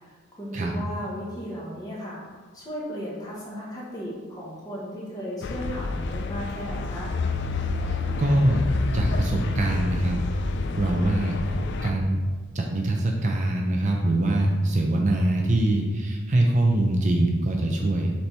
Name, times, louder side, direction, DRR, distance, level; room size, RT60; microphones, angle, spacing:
voice 1, 0.0-2.2 2.5-7.1, equal, 15° left, -5 dB, 1.4 m, -35 dB
sound 1, 5.4-11.9, left 3 dB, 55° left, 0.4 m, -28 dB
voice 2, 7.8-8.6 8.9-10.2 10.8-11.4 11.8-12.2 12.5-18.1, right 1 dB, 35° right, 0 dB, 0.5 m, -23 dB
6.9 x 4.4 x 3.4 m, 1.4 s
head